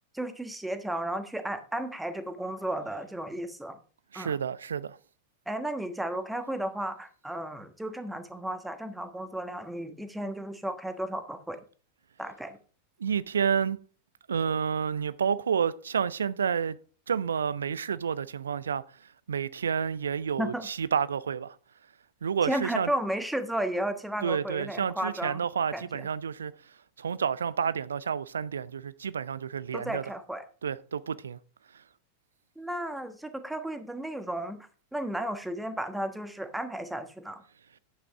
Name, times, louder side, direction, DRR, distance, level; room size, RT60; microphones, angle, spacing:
voice 1, 0.1-3.8 4.1-4.4 5.5-11.6 12.2-12.6 20.4-20.6 22.4-25.4 25.7-26.1 29.7-30.4 32.6-37.4, right 1 dB, 5° right, 1.2 m, -34 dB
voice 2, 4.1-5.0 13.0-13.8 14.3-16.8 17.1-18.8 19.3-21.6 22.2-22.9 24.2-26.5 27.0-30.0 30.6-31.4, right 7 dB, 70° right, 0.5 m, -29 dB
11.0 x 8.4 x 3.6 m
figure-of-eight pair, 90°, 0 cm